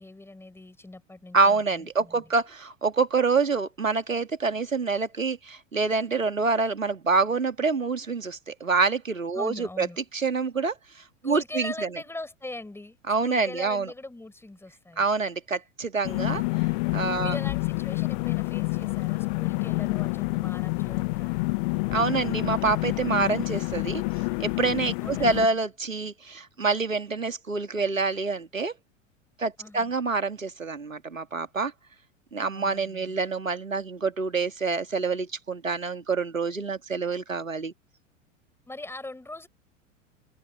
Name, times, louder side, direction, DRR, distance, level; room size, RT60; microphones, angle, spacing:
voice 1, 0.0-2.3 9.3-10.0 11.2-15.1 17.2-21.5 25.0-25.5 29.6-29.9 32.5-33.2 38.7-39.5, left 2 dB, 5° left, 6.5 m, -41 dB
voice 2, 1.3-9.9 10.1-10.7 11.2-11.7 13.1-13.9 15.0-16.4 16.9-17.4 21.9-24.0 24.4-28.7 29.4-31.7 32.3-37.7, right 4 dB, 85° right, 1.9 m, -26 dB
sound 1, 16.0-25.5, left 29 dB, 40° left, 0.7 m, -28 dB
open air
figure-of-eight pair, 90°, 38 cm